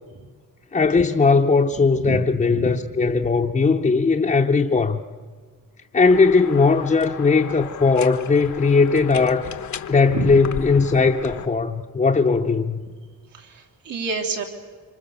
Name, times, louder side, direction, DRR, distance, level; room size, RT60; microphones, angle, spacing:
voice 1, 0.7-5.0 5.9-9.5 9.9-12.8, left 4 dB, 20° left, 0.8 m, -18 dB
voice 2, 1.7-2.2 2.5-2.8 10.1-10.4 13.3-14.4, right 3 dB, 75° right, 3.2 m, -28 dB
sound 1, 6.1-11.5, left 8 dB, 55° left, 1.0 m, -35 dB
26.5 x 25.0 x 7.0 m
wide cardioid pair, 140°, 34 cm